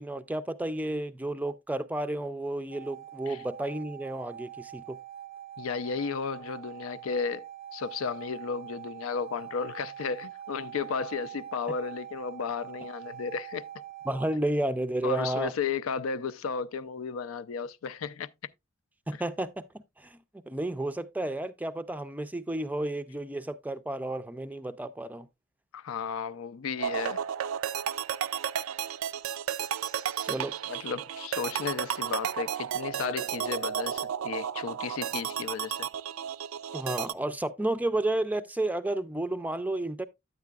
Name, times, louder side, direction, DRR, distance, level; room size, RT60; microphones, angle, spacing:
voice 1, 0.0-5.0 14.1-15.5 19.1-19.6 20.0-20.2 20.5-25.3 30.2-30.5 36.7-40.1, right 1 dB, 10° right, 0.3 m, -31 dB
sound 1, 2.7-14.4, right 11 dB, 45° left, 0.7 m, -44 dB
voice 2, 5.6-7.5 7.7-13.7 15.0-18.3 25.7-27.2 30.7-35.9, left 5 dB, 90° left, 0.4 m, -34 dB
sound 2, 26.8-37.1, right 9 dB, 90° right, 0.4 m, -33 dB
9.6 x 8.3 x 2.3 m
head